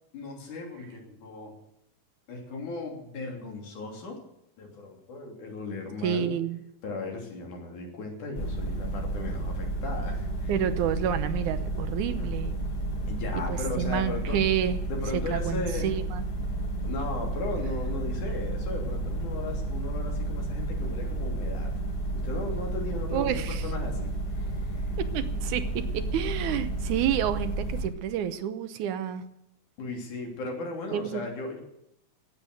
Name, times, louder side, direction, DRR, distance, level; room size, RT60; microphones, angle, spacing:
voice 1, 0.1-1.6 2.3-4.2 4.6-6.3 6.8-10.5 12.2-12.3 13.1-14.4 14.9-15.9 16.8-21.7 22.2-24.9 29.8-31.6, left 3 dB, 70° left, 2 dB, 4.4 m, -37 dB
voice 2, 6.0-6.6 10.5-12.6 13.5-14.8 15.3-16.2 23.1-23.6 25.0-29.2 30.9-31.2, right 10 dB, 75° right, 11 dB, 2.3 m, -29 dB
sound 1, 8.3-27.9, right 2 dB, 30° left, 3.3 m, -31 dB
16.5 x 8.2 x 7.8 m, 0.81 s
omnidirectional pair, 3.6 m